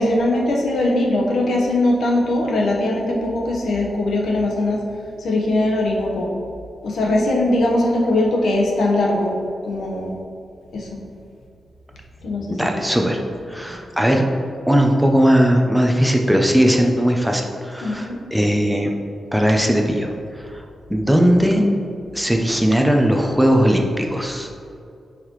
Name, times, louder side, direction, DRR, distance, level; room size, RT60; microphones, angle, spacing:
voice 1, 0.0-4.8 5.2-6.3 6.8-9.3 9.6-10.1 10.7-11.0 12.2-12.8 17.8-18.2, left 1 dB, 80° left, -1 dB, 1.2 m, -20 dB
voice 2, 12.5-13.2 13.5-14.3 14.7-18.9 19.3-20.6 20.9-21.6 22.1-24.5, equal, ahead, 2 dB, 0.5 m, -18 dB
9.3 x 4.9 x 3.1 m, 2.5 s
wide cardioid pair, 155°, 0 cm